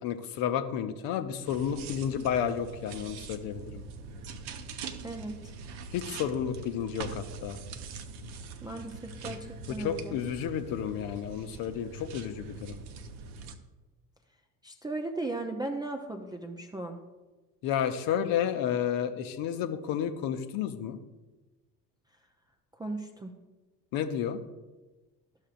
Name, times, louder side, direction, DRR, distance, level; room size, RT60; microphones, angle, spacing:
voice 1, 0.0-3.8 5.9-7.6 9.7-12.8 17.6-21.0 23.9-24.4, left 9 dB, 45° left, 9 dB, 0.7 m, -31 dB
sound 1, 1.5-13.6, right 4 dB, 50° right, 0.8 m, -43 dB
voice 2, 5.0-5.4 8.6-10.2 14.6-17.0 22.8-23.3, right 2 dB, 10° right, 4 dB, 0.4 m, -36 dB
12.5 x 6.4 x 2.5 m, 1.2 s
figure-of-eight pair, 65°, 49 cm